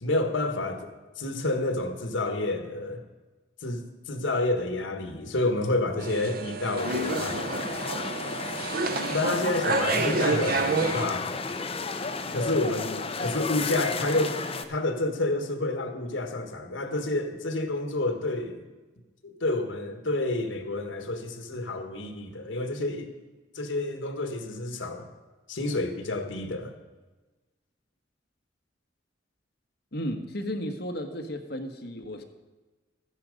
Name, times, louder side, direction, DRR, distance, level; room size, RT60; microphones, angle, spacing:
voice 1, 0.0-0.9 1.2-3.0 3.6-7.5 9.1-11.3 12.3-14.4 14.7-18.6 19.2-23.1 23.5-25.1 25.5-26.7, left 2 dB, 85° left, 6 dB, 1.4 m, -29 dB
sound 1, 6.0-11.1, right 3 dB, 50° right, 0.8 m, -29 dB
sound 2, 6.8-14.6, left 4 dB, 30° left, 0.8 m, -33 dB
voice 2, 29.9-32.2, equal, 60° left, 5 dB, 1.3 m, -34 dB
13.5 x 10.0 x 5.2 m, 1.2 s
head